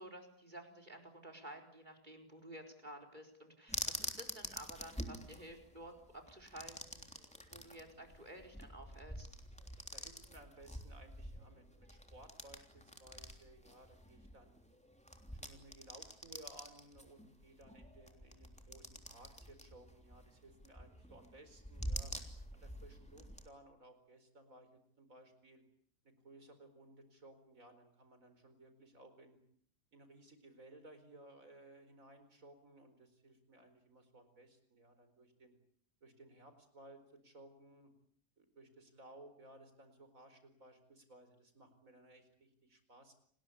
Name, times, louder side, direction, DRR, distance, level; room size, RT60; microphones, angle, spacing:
voice 1, 0.0-7.1 7.5-9.3, right 1 dB, 25° right, 4 dB, 4.7 m, -52 dB
sound 1, 3.7-23.5, equal, 5° left, 3.2 m, -47 dB
voice 2, 9.9-14.6 15.4-22.1 22.5-25.6 26.0-29.4 29.9-35.6 36.0-37.9 38.4-43.1, right 1 dB, 55° right, 9 dB, 4.9 m, -59 dB
29.5 x 20.5 x 8.5 m, 0.63 s
omnidirectional pair, 1.7 m